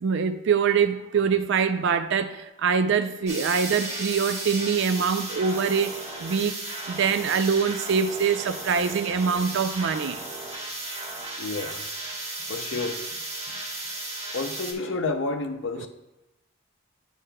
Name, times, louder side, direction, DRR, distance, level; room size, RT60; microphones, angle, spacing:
voice 1, 0.0-5.9 6.2-6.6 6.9-10.2 15.7-15.9, right 6 dB, 55° right, 0.3 m, -24 dB
sound 1, 3.3-14.7, right 2 dB, 30° right, 1.1 m, -35 dB
voice 2, 11.4-11.8 12.5-13.0 14.3-15.9, left 3 dB, 55° left, 0.5 m, -30 dB
9.9 x 4.8 x 2.2 m
head